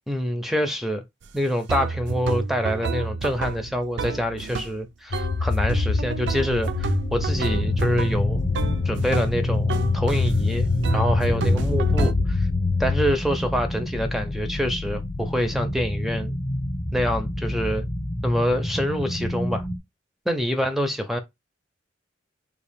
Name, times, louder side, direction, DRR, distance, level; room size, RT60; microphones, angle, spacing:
voice 1, 0.1-1.0 1.3-8.4 8.8-12.5 12.8-16.4 16.9-17.8 18.2-19.7 20.3-21.2, equal, ahead, 0.5 m, -26 dB
sound 1, 1.2-1.3 1.7-4.8 5.1-5.4 5.7-9.3 9.7-10.4 10.8-12.1, right 4 dB, 70° right, 0.5 m, -30 dB
sound 2, 5.1-13.1, left 4 dB, 60° left, 0.5 m, -25 dB
sound 3, 7.3-19.8, equal, 35° left, 0.8 m, -29 dB
3.6 x 2.4 x 3.5 m
head